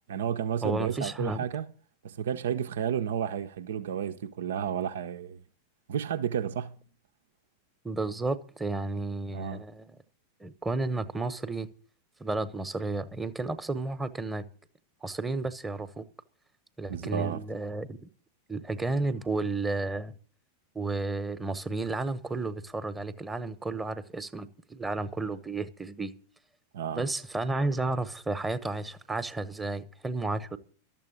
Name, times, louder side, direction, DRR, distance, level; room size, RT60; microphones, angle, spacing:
voice 1, 0.1-1.7 2.0-5.4 5.9-6.8 9.3-9.6 16.9-17.4 26.7-27.1, right 8 dB, 60° right, 0.6 m, -32 dB
voice 2, 0.6-1.4 7.8-9.9 10.4-11.7 12.2-14.4 15.0-16.0 16.8-18.1 18.5-20.1 20.7-26.1 26.9-30.6, right 3 dB, 10° right, 1.0 m, -32 dB
12.5 x 7.6 x 9.6 m
figure-of-eight pair, 90°, 0 cm